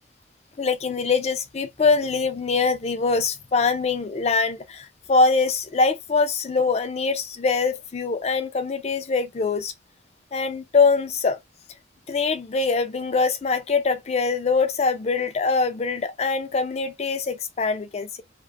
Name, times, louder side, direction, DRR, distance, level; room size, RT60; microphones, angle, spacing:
voice 1, 0.6-9.7 10.3-11.4 12.1-18.2, left 4 dB, 35° left, 0.3 m, -23 dB
2.5 x 2.2 x 2.4 m
head